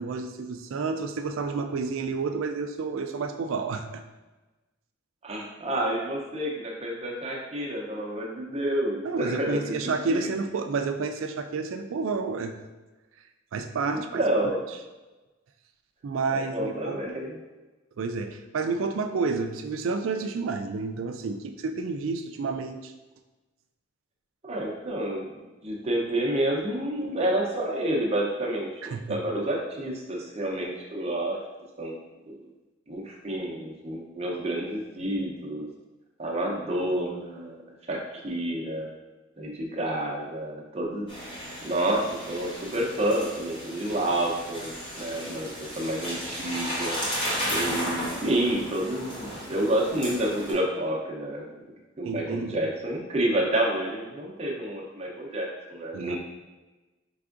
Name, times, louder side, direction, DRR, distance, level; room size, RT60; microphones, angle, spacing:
voice 1, 0.0-4.0 9.0-12.5 13.5-14.2 16.0-17.0 18.0-22.9 28.8-29.2 52.0-52.7 55.9-56.2, right 4 dB, 75° right, 7 dB, 0.4 m, -30 dB
voice 2, 5.2-10.3 13.8-14.6 16.3-17.4 24.4-31.4 31.8-32.0 32.3-32.4 32.9-35.7 36.2-37.6 37.9-38.9 39.4-41.1 41.6-47.0 47.5-51.6 52.0-56.2, right 1 dB, 30° right, -1 dB, 0.6 m, -29 dB
sound 1, 41.1-50.5, equal, 25° left, 1.1 m, -34 dB
4.8 x 3.4 x 2.5 m, 1.1 s
head